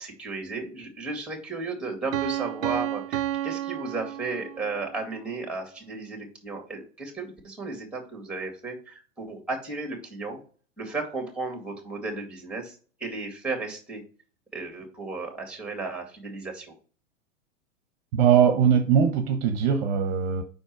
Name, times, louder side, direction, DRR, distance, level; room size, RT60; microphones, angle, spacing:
voice 1, 0.0-10.4 10.8-14.0 14.5-16.7, right 3 dB, 5° right, 2.2 m, -34 dB
Piano, 2.1-4.9, right 12 dB, 75° right, 0.6 m, -31 dB
voice 2, 18.1-20.4, right 8 dB, 45° right, 1.0 m, -21 dB
5.2 x 4.4 x 4.6 m
hypercardioid pair, 120°, 40 cm